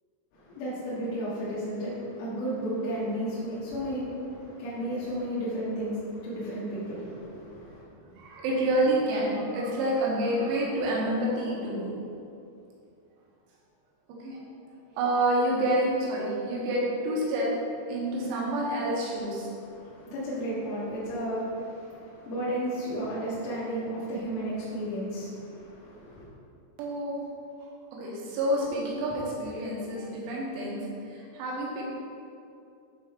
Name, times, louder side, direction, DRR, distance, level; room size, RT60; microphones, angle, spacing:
voice 1, 0.3-7.8 19.5-26.3, right 1 dB, 85° left, -11 dB, 4.4 m, -33 dB
voice 2, 8.2-11.9 14.2-14.4 14.9-17.5 17.9-19.5 26.8-27.2 27.9-31.8, right 1 dB, 90° right, -4 dB, 3.9 m, -28 dB
10.5 x 4.4 x 3.7 m, 2.6 s
omnidirectional pair, 6.0 m